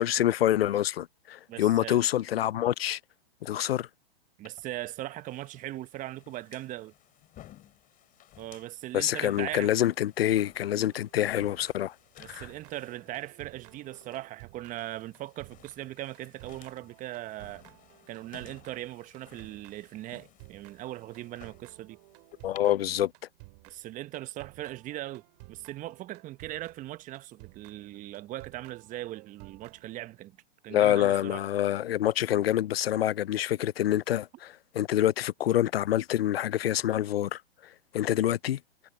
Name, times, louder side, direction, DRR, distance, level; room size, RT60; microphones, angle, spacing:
voice 1, 0.0-3.0 3.4-3.9 8.9-11.9 12.2-12.5 22.4-23.1 30.7-38.6, left 12 dB, 75° left, 0.5 m, -26 dB
voice 2, 1.5-2.0 4.4-6.9 8.4-9.7 12.2-17.6 18.1-22.0 23.7-25.2 25.5-30.3 30.6-31.4, right 15 dB, 25° right, 1.3 m, -39 dB
sound 1, 4.4-22.6, left 13 dB, 25° left, 4.6 m, -57 dB
sound 2, 10.9-12.1 12.4-30.2, right 32 dB, 40° right, 2.9 m, -54 dB
hypercardioid pair, 120°, 30 cm